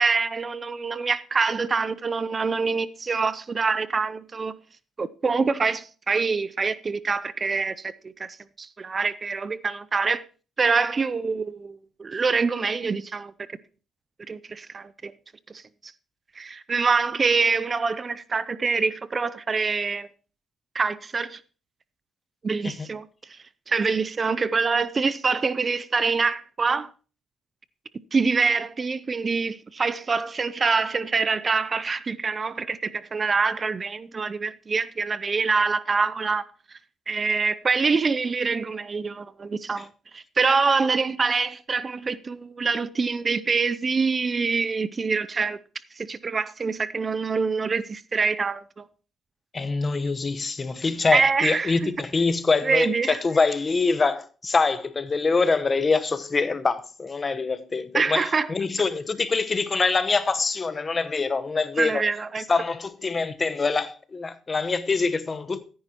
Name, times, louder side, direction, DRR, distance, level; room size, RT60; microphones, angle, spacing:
voice 1, 0.0-4.6 5.0-8.3 8.6-10.2 10.6-13.3 14.3-15.1 15.5-15.6 16.4-20.1 20.7-21.4 22.4-23.4 23.7-26.9 28.1-36.4 37.1-39.9 40.1-45.6 46.0-48.8 51.1-51.7 52.6-53.2 57.9-58.5 61.8-62.4, right 4 dB, 35° right, 0.5 m, -25 dB
voice 2, 49.5-62.0 62.5-65.6, left 4 dB, 30° left, 1.0 m, -24 dB
14.0 x 10.0 x 2.9 m
cardioid pair, 90°, 0 cm